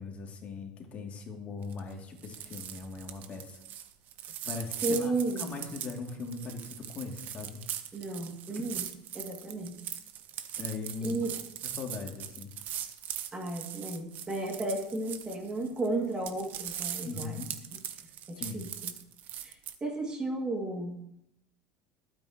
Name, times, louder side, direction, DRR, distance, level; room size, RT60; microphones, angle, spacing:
voice 1, 0.0-3.6 4.5-5.1 5.4-7.6 8.5-8.7 10.6-11.2 11.8-12.5 17.0-17.5 18.3-18.7, left 4 dB, 40° left, 1 dB, 2.8 m, -40 dB
sound 1, 1.6-1.9 2.2-19.7, right 10 dB, 55° right, 1.1 m, -40 dB
voice 2, 4.8-5.6 7.9-8.9 9.1-9.7 11.0-11.3 13.3-17.4 17.7-17.8 18.3-18.9 19.4-19.6 19.8-21.0, right 2 dB, 25° right, 2 dB, 2.5 m, -33 dB
21.5 x 9.1 x 3.1 m, 0.78 s
supercardioid pair, 105°, 4 cm